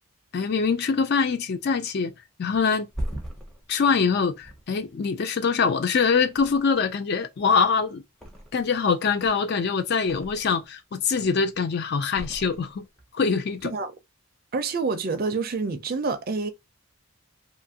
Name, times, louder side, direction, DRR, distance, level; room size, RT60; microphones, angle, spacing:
voice 1, 0.3-2.1 2.4-2.9 3.7-8.0 8.5-12.8 13.1-13.7, left 5 dB, 50° left, 0.4 m, -24 dB
Thump thud, 2.5-5.8 6.2-7.0 7.3-8.8 9.1-10.7 11.0-11.6 12.1-13.1 13.4-13.6, equal, ahead, 0.6 m, -39 dB
voice 2, 14.5-16.5, right 4 dB, 45° right, 0.4 m, -27 dB
2.6 x 2.5 x 2.7 m
head